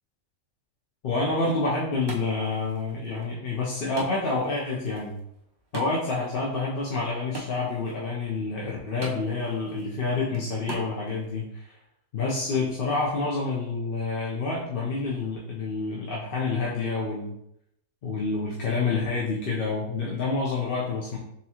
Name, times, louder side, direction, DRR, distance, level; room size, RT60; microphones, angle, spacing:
voice 1, 1.0-5.2 5.7-11.7 12.1-17.4 18.0-21.2, left 3 dB, 50° left, -5 dB, 0.8 m, -28 dB
Wood, 1.3-11.3, right 1 dB, 30° right, 0.5 m, -44 dB
4.1 x 3.7 x 2.8 m, 0.78 s
omnidirectional pair, 1.5 m